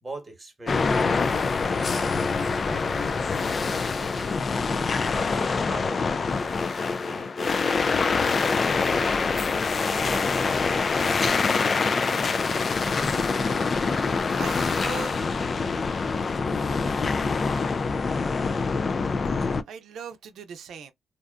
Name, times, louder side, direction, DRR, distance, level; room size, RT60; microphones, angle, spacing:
voice 1, 0.0-3.4 3.8-5.1 5.7-6.5 7.1-10.3, right 2 dB, 20° right, 1.2 m, -43 dB
sound 1, 0.7-19.6, left 4 dB, 40° left, 0.3 m, -25 dB
voice 2, 13.9-15.6 19.4-20.9, right 6 dB, 70° right, 0.6 m, -40 dB
2.6 x 2.2 x 2.4 m
cardioid pair, 90°, 0 cm